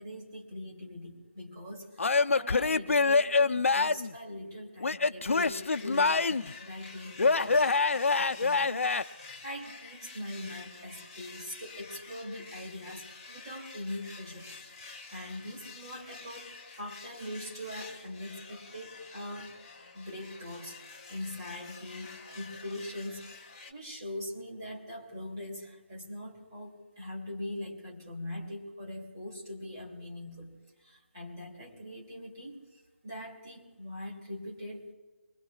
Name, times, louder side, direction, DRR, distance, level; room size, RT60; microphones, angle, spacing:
voice 1, 0.0-19.5 19.9-30.5 30.8-32.6 33.0-34.9, left 1 dB, 20° right, -4 dB, 2.7 m, -42 dB
Male speech man speaking / Yell / Laughter, 2.0-4.1 4.8-6.5 7.2-9.0, left 4 dB, 80° left, 0.6 m, -25 dB
sound 1, 5.3-23.7, left 4 dB, 25° left, 1.5 m, -49 dB
25.5 x 21.0 x 2.4 m, 1.2 s
hypercardioid pair, 180°, 7 cm